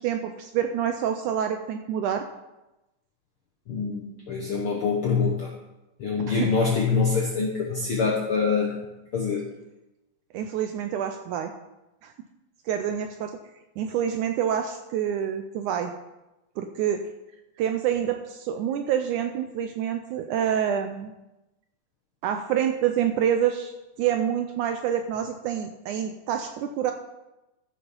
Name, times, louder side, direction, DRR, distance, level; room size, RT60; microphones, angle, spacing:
voice 1, 0.0-2.3 6.3-6.5 10.3-11.5 12.0-12.1 12.7-13.4 13.8-15.9 16.6-17.0 17.6-21.1 22.2-23.7 24.0-26.9, right 9 dB, 80° right, 6 dB, 1.8 m, -27 dB
voice 2, 3.7-5.5 6.0-8.7 9.1-9.4, left 5 dB, 70° left, 0 dB, 1.3 m, -25 dB
14.0 x 6.4 x 5.4 m, 0.97 s
omnidirectional pair, 4.1 m